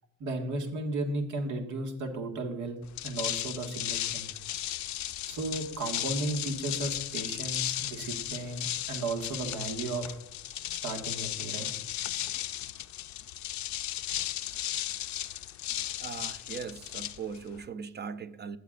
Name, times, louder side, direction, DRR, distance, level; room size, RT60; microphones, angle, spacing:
voice 1, 0.2-4.3 5.2-10.2 10.8-11.7, right 2 dB, 75° right, 1.9 m, -34 dB
sound 1, 2.8-17.7, left 13 dB, 70° left, 0.6 m, -35 dB
voice 2, 15.7-18.6, right 6 dB, 35° right, 0.7 m, -40 dB
15.0 x 8.2 x 2.5 m
cardioid pair, 90°, 30 cm